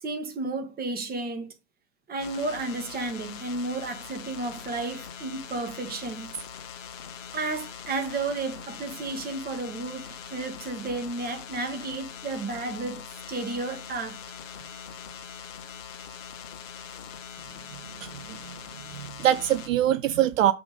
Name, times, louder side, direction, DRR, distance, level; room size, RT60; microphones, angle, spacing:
voice 1, 0.0-1.5 2.1-6.3 7.3-14.2, right 3 dB, 25° right, 1.8 m, -32 dB
sound 1, 2.2-19.7, left 7 dB, 65° left, 1.3 m, -42 dB
voice 2, 18.0-18.5 18.9-20.5, right 12 dB, 75° right, 0.6 m, -24 dB
6.9 x 3.7 x 5.0 m
hypercardioid pair, 95°, 40 cm